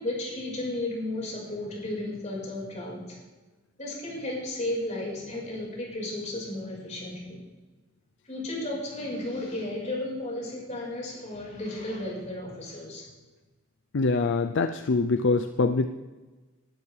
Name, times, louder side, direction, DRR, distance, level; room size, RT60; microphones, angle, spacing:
voice 1, 0.0-3.2 3.8-7.4 8.2-13.1, left 1 dB, 40° left, -3 dB, 4.9 m, -34 dB
voice 2, 13.9-15.9, left 3 dB, 65° left, 8 dB, 0.5 m, -24 dB
20.0 x 11.5 x 3.4 m, 1.2 s
head